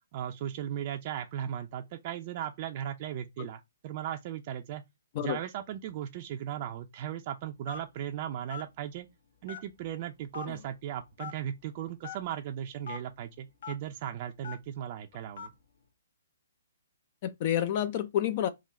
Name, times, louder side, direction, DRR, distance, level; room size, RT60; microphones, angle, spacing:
voice 1, 0.1-4.8 5.2-9.1 9.4-15.5, right 10 dB, 40° right, 0.5 m, -37 dB
Telephone, 7.7-8.0 8.5-8.7 9.5-9.9 10.3-10.5 11.2-11.4 12.0-12.2 12.8-13.0 13.6-13.7 14.4-14.7 15.4-15.6, left 7 dB, 65° left, 1.2 m, -40 dB
voice 2, 17.2-18.5, left 10 dB, 40° left, 0.4 m, -29 dB
3.7 x 2.4 x 4.2 m
hypercardioid pair, 150°, 0 cm